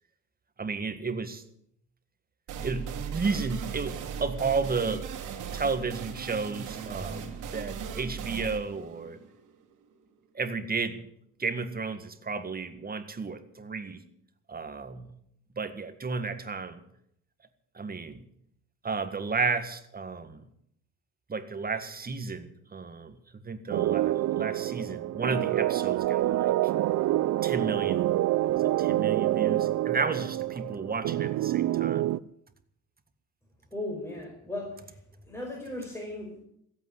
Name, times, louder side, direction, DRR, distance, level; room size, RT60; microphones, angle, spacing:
voice 1, 0.6-1.4 2.6-5.1 5.5-9.2 10.3-11.1 11.4-14.0 14.5-15.1 15.6-16.8 17.8-18.2 18.8-20.4 21.3-23.2 23.4-26.6 27.4-28.2 28.5-32.1, right 4 dB, 30° right, 9 dB, 1.8 m, -33 dB
sound 1, 2.5-9.9, right 6 dB, 85° right, 2.7 m, -37 dB
sound 2, 23.7-32.2, right 15 dB, 65° right, 0.6 m, -27 dB
voice 2, 33.7-35.0 35.3-36.4, left 1 dB, 10° left, -1 dB, 5.1 m, -37 dB
15.5 x 8.6 x 9.9 m, 0.73 s
cardioid pair, 90°, 30 cm